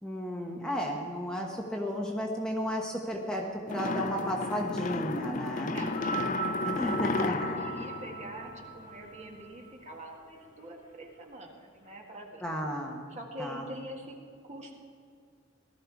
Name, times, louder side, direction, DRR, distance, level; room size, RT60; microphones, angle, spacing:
voice 1, 0.0-5.7 6.6-7.6 12.4-13.0 13.4-13.7, equal, 5° left, -1 dB, 1.1 m, -33 dB
sound 1, 3.7-9.0, left 3 dB, 40° left, 0.5 m, -33 dB
voice 2, 5.6-12.5 13.1-14.2 14.4-14.8, right 1 dB, 35° right, 0 dB, 1.9 m, -44 dB
sound 2, 5.9-10.4 11.3-11.4, right 5 dB, 25° left, 4.4 m, -38 dB
18.0 x 12.5 x 4.7 m, 2.2 s
head